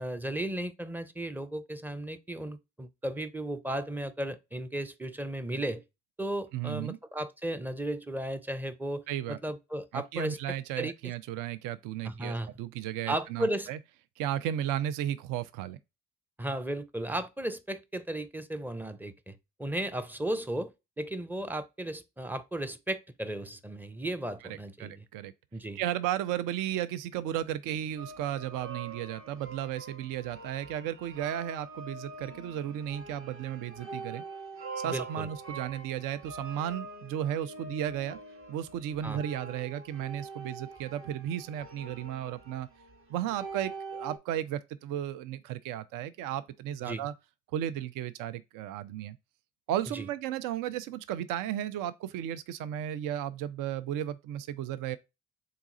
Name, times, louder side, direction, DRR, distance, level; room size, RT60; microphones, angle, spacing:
voice 1, 0.0-5.8 6.2-11.1 12.0-12.5 13.1-13.7 16.4-25.1 25.5-25.8 34.9-35.3 39.0-39.2 46.8-47.1 49.9-50.1, right 1 dB, 5° right, 0.5 m, -35 dB
voice 2, 6.5-7.0 9.1-9.4 9.9-13.8 14.2-15.8 24.5-25.3 25.8-34.2 34.8-38.2 38.5-42.7 43.1-47.1 47.5-49.2 49.7-55.0, right 11 dB, 65° right, 0.5 m, -34 dB
sound 1, 28.0-44.2, right 3 dB, 35° right, 0.9 m, -44 dB
3.8 x 2.3 x 4.1 m
hypercardioid pair, 50°, 36 cm